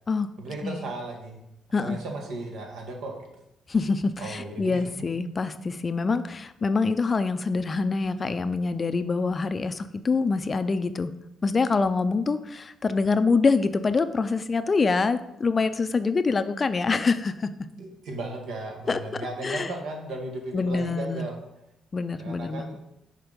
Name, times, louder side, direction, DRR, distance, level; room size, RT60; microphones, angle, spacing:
voice 1, 0.4-1.4 1.7-3.3 4.2-4.9 17.8-21.4 22.2-22.8, right 2 dB, 80° right, 2 dB, 1.5 m, -36 dB
voice 2, 3.7-11.1 11.4-17.5 18.9-19.7 20.5-21.3 21.9-22.8, left 4 dB, 35° left, 11 dB, 0.4 m, -25 dB
6.0 x 4.5 x 5.1 m, 0.82 s
cardioid pair, 90°, 0 cm